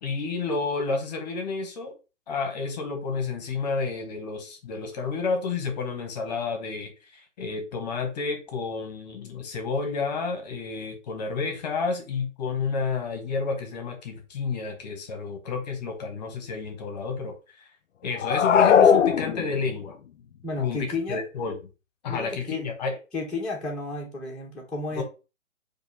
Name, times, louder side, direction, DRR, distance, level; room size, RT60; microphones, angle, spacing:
voice 1, 0.0-1.9 2.3-17.7 18.0-19.9 20.6-20.8 21.1-21.6 22.0-22.9 24.9-25.0, left 4 dB, 35° left, 4 dB, 1.0 m, -30 dB
sound 1, 18.2-19.8, left 7 dB, 70° left, 0.5 m, -19 dB
voice 2, 20.4-21.2 22.1-22.6 23.1-25.0, left 3 dB, ahead, -5 dB, 0.9 m, -32 dB
4.6 x 2.6 x 4.4 m, 0.30 s
figure-of-eight pair, 135°, 38 cm